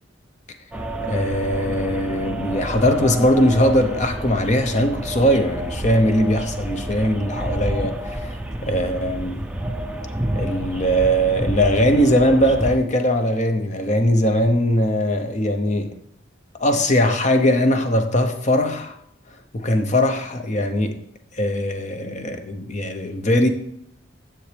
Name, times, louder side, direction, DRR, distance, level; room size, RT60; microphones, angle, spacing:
sound 1, 0.7-12.8, right 1 dB, 5° right, 0.5 m, -29 dB
voice 1, 1.0-8.3 8.6-9.4 10.3-15.9 16.6-19.0 19.5-20.9 21.3-23.5, equal, 40° left, 6 dB, 0.8 m, -20 dB
10.0 x 7.1 x 3.4 m, 0.72 s
head